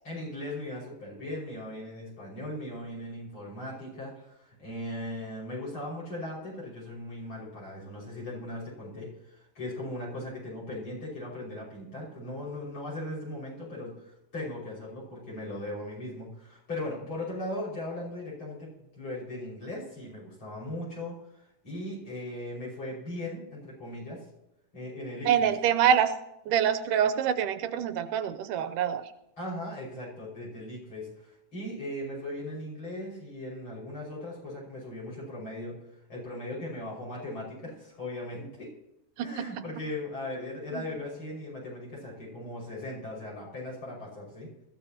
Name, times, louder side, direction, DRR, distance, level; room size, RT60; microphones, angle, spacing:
voice 1, 0.0-24.2 24.7-25.5 29.4-35.8 36.1-38.7 39.2-44.5, left 1 dB, 35° left, -5 dB, 6.1 m, -38 dB
voice 2, 25.3-26.1 26.5-29.0 39.2-39.5 40.8-40.9, right 9 dB, 90° right, 11 dB, 2.3 m, -25 dB
21.5 x 14.5 x 2.9 m, 0.85 s
omnidirectional pair, 3.7 m